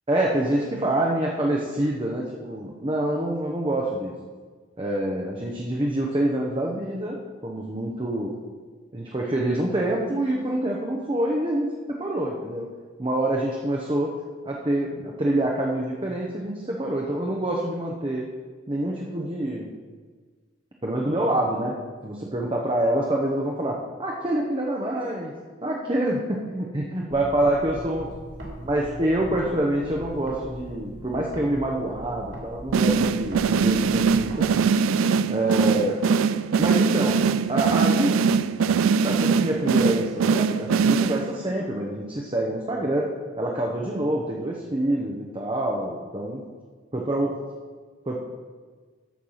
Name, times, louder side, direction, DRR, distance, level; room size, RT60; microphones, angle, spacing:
voice 1, 0.1-4.1 4.8-7.2 7.4-8.3 8.9-12.7 13.0-14.1 14.4-18.2 18.7-19.7 20.8-21.7 22.0-25.3 25.6-28.1 28.7-34.7 35.3-36.0 36.6-37.2 37.5-38.3 39.0-43.1 43.4-46.4 46.9-47.3 48.1-48.2, right 1 dB, 25° right, -2 dB, 0.8 m, -26 dB
sound 1, 27.1-29.5 29.8-34.5, right 1 dB, 60° right, 2.6 m, -40 dB
sound 2, 32.7-41.5, right 5 dB, 80° right, 0.3 m, -22 dB
13.5 x 4.6 x 5.6 m, 1.5 s
head